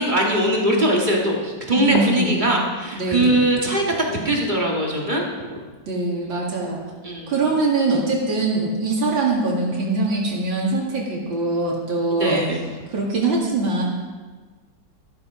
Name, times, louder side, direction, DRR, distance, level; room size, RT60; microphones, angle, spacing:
voice 1, 0.0-5.6 7.0-7.3 12.2-12.6, right 1 dB, 25° right, -2 dB, 2.5 m, -21 dB
voice 2, 1.8-2.5 2.9-3.5 5.9-6.8 7.3-12.4 12.9-13.8, right 3 dB, 80° right, -3 dB, 2.9 m, -23 dB
14.0 x 12.5 x 5.0 m, 1.4 s
omnidirectional pair, 2.1 m